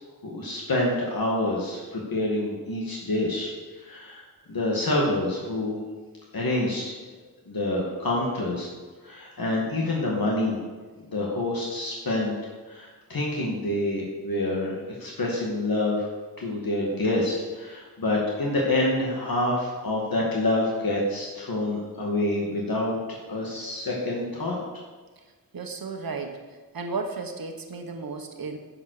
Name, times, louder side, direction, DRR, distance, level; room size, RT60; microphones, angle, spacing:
voice 1, 0.2-3.5 3.8-4.2 4.5-5.8 6.3-7.0 7.5-8.7 9.0-10.6 11.1-12.3 12.7-16.1 16.4-23.0 23.3-24.6, left 1 dB, 85° left, -3 dB, 2.2 m, -27 dB
voice 2, 25.5-26.4 26.7-28.6, right 4 dB, 85° right, 5 dB, 1.2 m, -33 dB
11.0 x 7.6 x 6.7 m, 1.3 s
wide cardioid pair, 100°, 34 cm